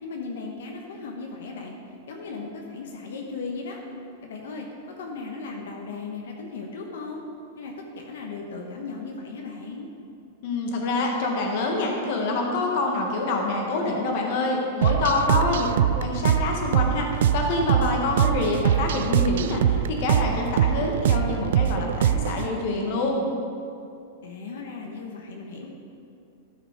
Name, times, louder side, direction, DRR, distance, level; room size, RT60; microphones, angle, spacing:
voice 1, 0.0-1.7 2.1-3.8 4.2-4.7 5.0-7.2 7.6-9.9 15.3-15.9 24.2-25.7, left 4 dB, 80° left, 1 dB, 1.0 m, -36 dB
voice 2, 10.4-15.6 16.0-17.1 17.3-23.2, left 2 dB, 45° left, 1 dB, 1.4 m, -26 dB
sound 1, 14.8-22.5, right 10 dB, 70° right, 0.3 m, -23 dB
13.0 x 5.0 x 4.6 m, 2.5 s
supercardioid pair, 165°, 0 cm